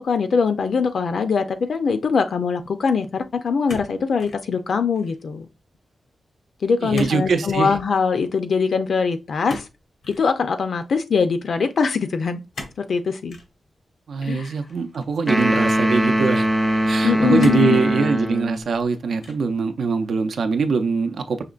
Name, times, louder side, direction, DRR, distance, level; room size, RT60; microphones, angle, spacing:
voice 1, 0.0-5.5 6.6-9.6 10.1-12.4 12.8-13.4 14.2-14.5 17.0-17.8, left 5 dB, 65° left, 0.6 m, -22 dB
sound 1, 3.7-4.4 4.8-5.2 6.9-7.2 7.5-7.7 9.5-10.3 12.5-12.9 13.3-13.5 14.4-15.2 15.9-16.0 17.4-17.8 18.4-18.9 19.2-19.6, left 2 dB, 85° left, 1.1 m, -38 dB
voice 2, 6.8-7.7 14.1-16.5 16.9-21.4, right 4 dB, 75° right, 0.5 m, -22 dB
sound 2, 15.3-18.6, right 1 dB, ahead, 0.5 m, -21 dB
5.8 x 3.0 x 2.4 m
wide cardioid pair, 165°, 0 cm